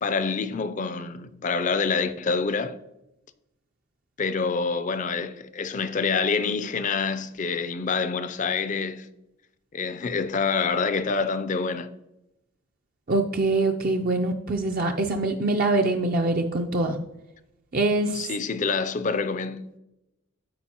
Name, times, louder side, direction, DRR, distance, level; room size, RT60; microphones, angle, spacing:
voice 1, 0.0-2.8 4.2-9.1 9.7-11.9 18.1-19.7, left 5 dB, 35° left, 0.4 m, -27 dB
voice 2, 13.1-17.0 17.7-18.3, right 2 dB, 40° right, 0.4 m, -24 dB
13.0 x 4.6 x 2.9 m
head